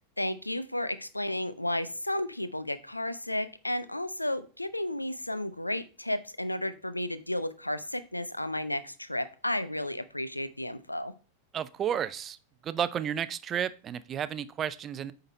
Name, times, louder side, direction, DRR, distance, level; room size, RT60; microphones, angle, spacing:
voice 1, 0.2-11.1, left 1 dB, 85° left, 14 dB, 0.5 m, -33 dB
voice 2, 11.5-12.4 12.6-15.1, right 9 dB, 25° right, 15 dB, 0.4 m, -32 dB
8.7 x 3.9 x 4.2 m, 0.36 s
figure-of-eight pair, 90°, 0 cm